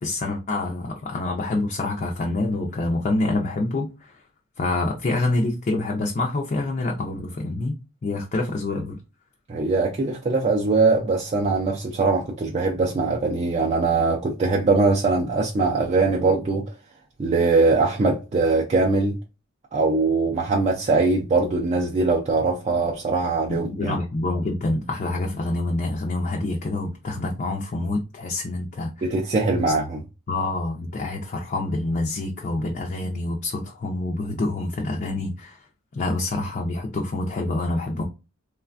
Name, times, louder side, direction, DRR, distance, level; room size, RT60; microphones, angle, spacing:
voice 1, 0.0-4.2 4.6-7.8 8.0-9.0 23.5-29.1 30.3-35.7 35.9-38.0, left 2 dB, 40° left, 0.4 m, -26 dB
voice 2, 9.5-16.6 17.2-19.2 19.7-24.0 29.0-30.0, right 3 dB, 30° right, 0.4 m, -21 dB
3.2 x 2.2 x 2.4 m
head